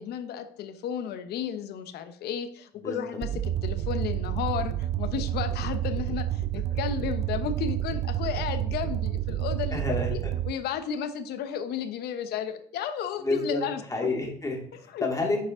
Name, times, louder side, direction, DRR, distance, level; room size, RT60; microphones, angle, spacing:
voice 1, 0.0-9.8 10.1-10.2 10.4-14.1 14.9-15.1, left 8 dB, 75° left, 10 dB, 0.9 m, -33 dB
sound 1, 3.2-10.5, right 12 dB, 40° right, 0.5 m, -29 dB
voice 2, 9.7-10.4 13.2-13.6 13.9-15.4, left 2 dB, 20° left, 0 dB, 2.1 m, -29 dB
9.4 x 4.9 x 3.7 m, 0.62 s
cardioid pair, 110°, 17 cm